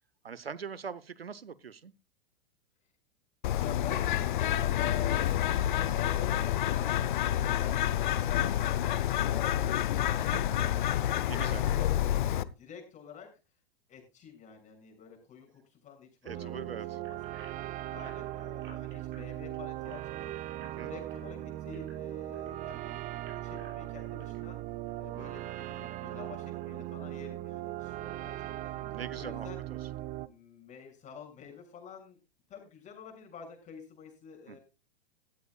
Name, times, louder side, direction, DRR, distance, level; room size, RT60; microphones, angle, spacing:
voice 1, 0.2-1.9 10.2-11.0 11.3-11.7 16.2-17.0 20.6-20.9 28.8-29.5 34.5-34.6, right 6 dB, 80° right, 1.0 m, -42 dB
Bird, 3.4-12.4, left 11 dB, 55° left, 0.9 m, -28 dB
voice 2, 3.6-10.4 10.8-13.3 13.9-17.2 17.9-20.3 20.8-24.6 25.0-28.8 29.1-29.6 30.2-32.2 32.5-34.6, left 7 dB, 25° left, 6.6 m, -48 dB
sound 1, 16.3-30.3, right 15 dB, 25° right, 0.7 m, -39 dB
sound 2, 17.0-22.5 23.0-24.4 24.9-25.0 25.5-25.6, right 4 dB, 60° right, 7.0 m, -56 dB
16.0 x 13.5 x 2.4 m
figure-of-eight pair, 100°, 29 cm